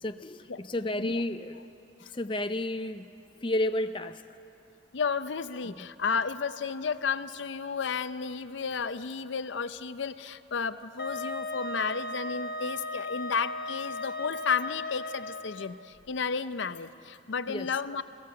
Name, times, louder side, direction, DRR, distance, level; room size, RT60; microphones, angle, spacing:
voice 1, 0.0-1.6 2.1-3.1 3.4-4.2 5.7-5.8 17.5-17.7, left 1 dB, 25° left, 8 dB, 0.6 m, -31 dB
voice 2, 4.9-18.0, left 5 dB, 70° left, 13 dB, 0.6 m, -32 dB
Wind instrument woodwind instrument, 11.0-15.7, left 2 dB, 50° left, 1.4 m, -36 dB
29.5 x 17.0 x 7.7 m, 2.8 s
head